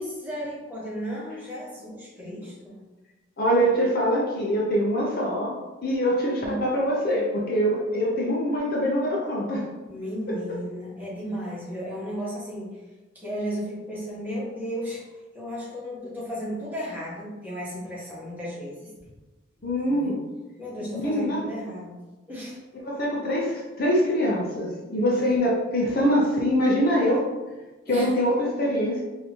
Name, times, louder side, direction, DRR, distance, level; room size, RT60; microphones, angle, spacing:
voice 1, 0.0-2.8 6.4-6.6 9.9-12.8 13.1-15.0 15.3-18.9 19.9-20.1 20.6-22.0 22.3-22.6 25.1-25.2 27.9-28.2, equal, 10° right, -9 dB, 1.5 m, -34 dB
voice 2, 3.4-5.5 5.8-9.7 10.3-10.4 19.6-20.2 21.0-21.4 22.8-27.3 27.9-29.0, equal, 50° left, -3 dB, 0.7 m, -24 dB
5.2 x 2.8 x 2.9 m, 1.1 s
head